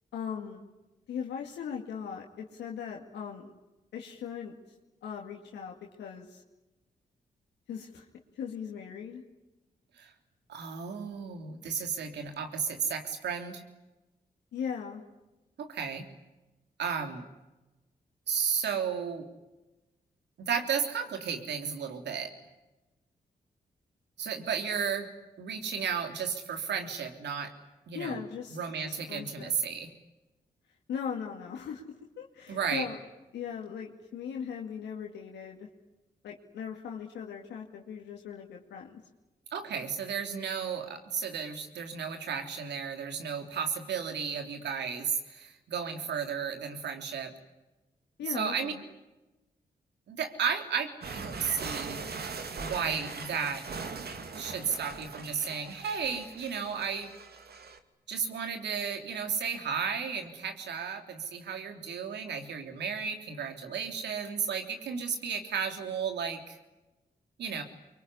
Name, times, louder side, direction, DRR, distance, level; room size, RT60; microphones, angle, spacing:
voice 1, 0.1-0.7 1.1-3.5 3.9-4.6 5.0-6.4 7.7-8.1 8.3-9.2 14.5-15.0 27.9-29.5 30.9-31.8 32.2-33.0 33.3-35.7 36.2-39.0 48.2-48.8, left 7 dB, 90° left, 0 dB, 2.4 m, -39 dB
voice 2, 10.5-13.6 15.6-16.1 16.8-17.3 18.3-19.3 20.4-22.3 24.2-25.1 25.4-27.5 27.9-28.2 28.5-29.9 32.5-32.8 39.5-47.3 48.3-48.7 50.1-52.0 52.6-53.6 54.4-57.1 58.1-66.6 67.4-67.6, right 6 dB, 85° right, 5 dB, 3.4 m, -33 dB
sound 1, 51.0-57.8, right 4 dB, 65° right, 2.6 m, -41 dB
24.5 x 24.0 x 9.9 m, 1.0 s
supercardioid pair, 45°, 17 cm